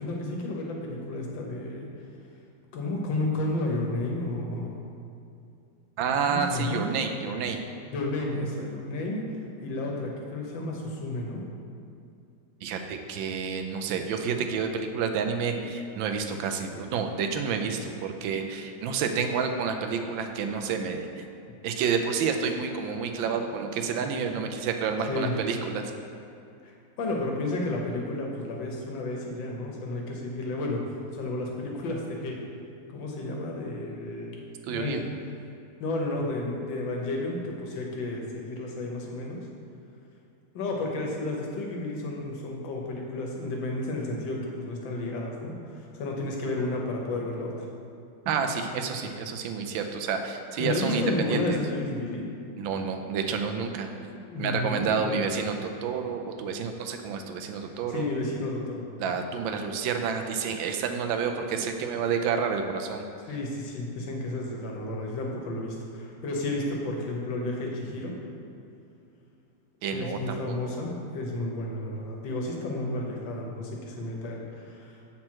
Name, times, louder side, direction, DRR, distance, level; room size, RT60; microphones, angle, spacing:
voice 1, 0.0-1.9 2.7-4.7 6.3-6.8 7.9-9.2 9.6-11.4 23.0-23.5 25.1-25.3 26.6-32.4 32.9-34.4 34.7-34.9 35.8-39.4 40.5-47.6 50.6-52.3 54.3-55.2 57.6-58.8 63.3-68.1 69.9-74.9, left 2 dB, 80° left, -1 dB, 1.7 m, -32 dB
voice 2, 6.0-7.6 12.6-21.2 21.6-25.9 34.7-35.0 48.3-51.6 52.6-54.1 54.4-58.1 59.0-63.0 69.8-70.8, right 6 dB, 90° right, 5 dB, 1.4 m, -29 dB
7.3 x 4.4 x 4.5 m, 2.6 s
omnidirectional pair, 2.0 m